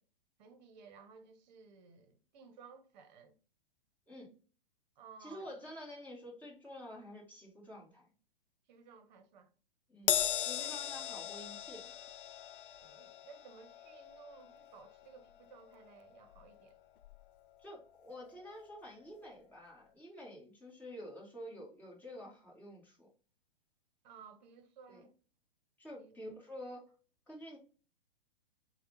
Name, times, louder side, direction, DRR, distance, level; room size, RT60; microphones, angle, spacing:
voice 1, 0.4-3.4 5.0-5.6 8.7-9.5 10.6-10.8 12.8-16.8 24.0-25.1 26.0-26.2, right 5 dB, 50° right, 1.0 m, -57 dB
voice 2, 5.2-8.1 9.9-11.9 17.6-23.1 24.9-25.0 25.8-26.9 27.3-27.6, left 1 dB, 5° left, 1.7 m, -49 dB
Crash cymbal, 10.1-16.7 17.0-17.3 18.3-18.4, left 10 dB, 65° left, 0.4 m, -38 dB
6.6 x 2.4 x 3.0 m
figure-of-eight pair, 110°, 29 cm